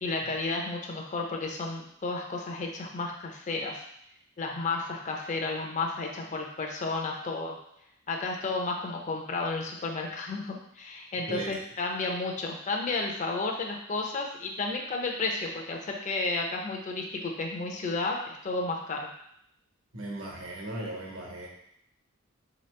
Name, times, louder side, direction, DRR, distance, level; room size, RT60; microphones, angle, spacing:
voice 1, 0.0-3.8 4.4-7.6 8.1-19.1, left 3 dB, 35° left, 1 dB, 0.5 m, -32 dB
voice 2, 19.9-21.5, right 1 dB, 65° right, -2 dB, 1.2 m, -37 dB
4.2 x 2.9 x 3.2 m, 0.72 s
head